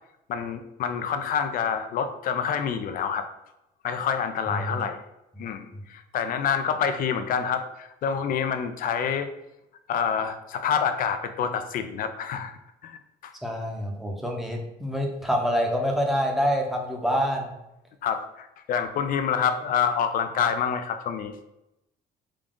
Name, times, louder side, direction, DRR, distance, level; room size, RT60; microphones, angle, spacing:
voice 1, 0.3-3.3 3.8-5.0 5.4-9.3 9.9-12.5 12.8-13.3 18.0-21.4, left 7 dB, 55° left, 8 dB, 0.4 m, -27 dB
voice 2, 4.5-4.8 5.7-5.8 13.4-17.5, equal, ahead, 1 dB, 0.7 m, -26 dB
3.7 x 2.3 x 3.7 m, 0.87 s
cardioid pair, 110°, 17 cm